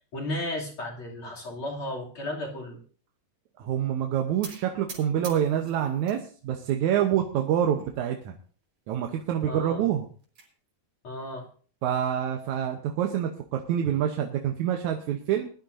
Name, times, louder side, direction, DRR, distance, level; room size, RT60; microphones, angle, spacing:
voice 1, 0.1-2.8 9.5-9.8 11.0-11.5, left 1 dB, 45° left, -3 dB, 3.6 m, -34 dB
voice 2, 3.6-8.3 8.9-10.0 11.8-15.5, right 10 dB, 90° right, 3 dB, 2.3 m, -26 dB
sound 1, 4.4-6.2 6.6-7.2 7.8-7.9 8.2-8.3 8.6-8.7 9.8-10.5, right 4 dB, 70° right, 5.0 m, -45 dB
21.0 x 11.5 x 2.7 m, 0.42 s
omnidirectional pair, 3.3 m